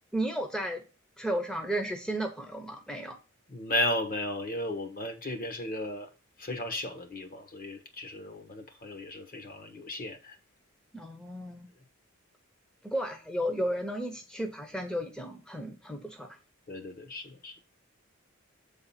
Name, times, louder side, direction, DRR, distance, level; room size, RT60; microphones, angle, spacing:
voice 1, 0.1-0.8 1.2-3.2 10.9-11.7 12.8-16.4, right 1 dB, 5° left, 0.8 m, -33 dB
voice 2, 3.5-6.1 6.4-10.4 16.7-17.6, left 1 dB, 45° left, 1.3 m, -35 dB
7.7 x 3.9 x 5.7 m
head